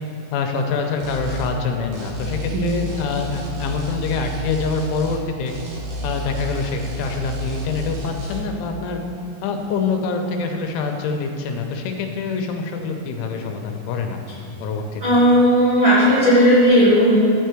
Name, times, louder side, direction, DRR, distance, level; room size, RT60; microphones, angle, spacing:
voice 1, 0.3-5.5 6.0-9.0 9.4-15.0, left 4 dB, 85° left, 3 dB, 3.1 m, -25 dB
sound 1, 1.0-1.5 1.9-5.2 5.5-8.4, right 2 dB, 80° right, 1.5 m, -30 dB
voice 2, 15.0-17.2, equal, 65° right, -9 dB, 1.2 m, -15 dB
11.5 x 4.6 x 8.0 m, 2.7 s
omnidirectional pair, 5.7 m